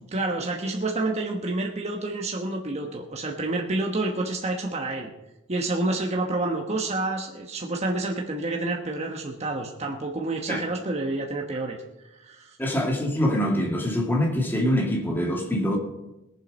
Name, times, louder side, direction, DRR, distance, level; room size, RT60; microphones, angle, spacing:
voice 1, 0.1-5.1 5.5-11.8 12.2-12.6, right 2 dB, 30° right, 1.2 m, -28 dB
voice 2, 12.6-15.8, equal, 10° left, 2.1 m, -24 dB
20.5 x 7.5 x 5.3 m
head